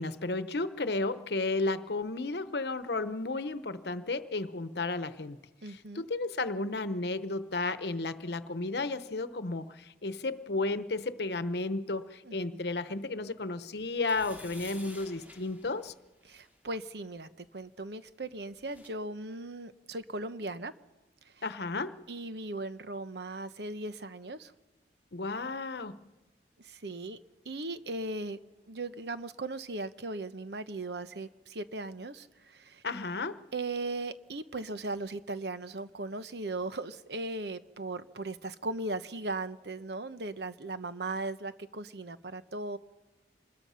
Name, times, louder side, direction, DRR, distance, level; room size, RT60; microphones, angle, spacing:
voice 1, 0.0-5.4 5.7-15.9 21.4-22.0 25.1-26.0 32.8-33.4, left 3 dB, 75° left, 0.9 m, -33 dB
voice 2, 5.6-6.0 12.2-12.4 16.2-20.7 22.1-24.5 26.6-27.2 27.4-28.4 28.7-32.8 33.5-42.8, right 2 dB, 75° right, 1.0 m, -38 dB
sound 1, 13.9-16.6 18.2-18.3 18.5-18.9, left 1 dB, 10° right, 3.1 m, -51 dB
26.0 x 21.0 x 5.7 m
head